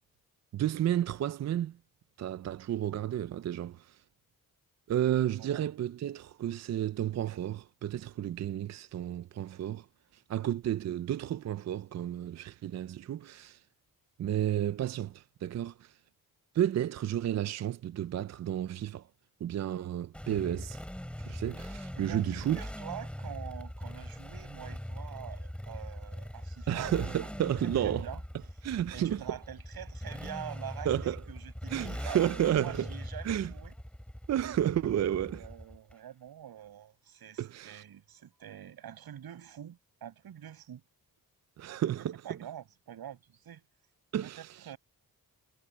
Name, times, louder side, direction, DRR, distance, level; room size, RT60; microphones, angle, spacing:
voice 1, 0.5-1.8 2.2-4.0 4.9-9.9 10.1-13.6 14.2-16.0 16.5-19.1 19.4-20.8 21.2-22.6 26.7-28.1 28.6-29.2 30.9-31.2 31.7-32.9 33.2-33.5 34.3-35.4 37.4-37.8 41.6-42.4 44.1-44.5, right 11 dB, 50° right, 0.4 m, -32 dB
Motorcycle, 20.1-35.9, equal, 5° left, 7.6 m, -41 dB
voice 2, 21.9-26.9 27.6-28.2 28.9-33.7 35.3-40.8 42.2-43.6 44.2-44.8, right 10 dB, 80° right, 7.0 m, -46 dB
wide cardioid pair, 155°, 36 cm